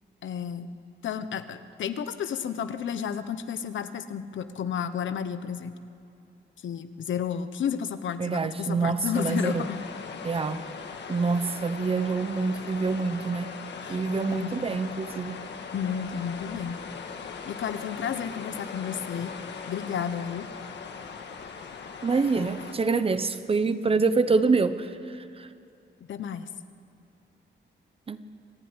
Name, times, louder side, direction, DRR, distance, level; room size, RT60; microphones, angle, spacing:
voice 1, 0.2-0.7 1.0-5.7 6.6-9.8 13.8-14.0 14.3-14.6 15.7-16.8 17.5-19.3 19.7-20.5 26.1-26.5, left 8 dB, 85° left, 11 dB, 1.1 m, -32 dB
voice 2, 8.2-9.7 10.2-10.6 11.1-13.5 13.9-15.4 22.0-25.5 28.1-28.3, right 4 dB, 30° right, 12 dB, 0.9 m, -26 dB
sound 1, 9.1-22.7, left 5 dB, 65° left, 1.9 m, -40 dB
25.5 x 15.5 x 9.8 m, 2.6 s
wide cardioid pair, 160°, 19 cm